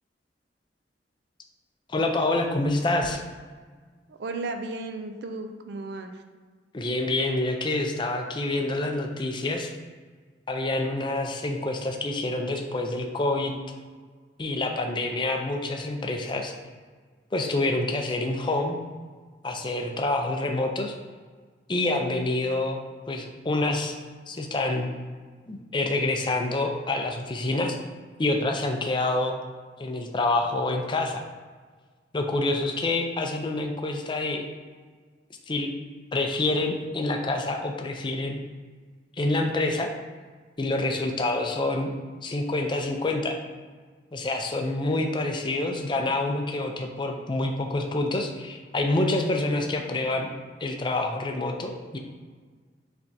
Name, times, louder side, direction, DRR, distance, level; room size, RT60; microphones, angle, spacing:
voice 1, 1.9-3.2 6.7-9.7 10.5-13.5 14.4-16.5 17.3-18.8 19.4-20.9 21.7-22.8 23.1-24.0 24.3-24.9 25.5-27.8 28.2-29.4 29.8-31.2 32.1-34.4 35.5-35.7 36.1-38.4 39.2-39.9 40.6-41.9 42.2-43.4 44.1-50.3 50.6-52.0, left 2 dB, 25° left, 3 dB, 0.5 m, -27 dB
voice 2, 4.1-6.2, right 3 dB, 65° right, 6 dB, 0.4 m, -34 dB
5.6 x 3.4 x 2.7 m, 1.5 s
head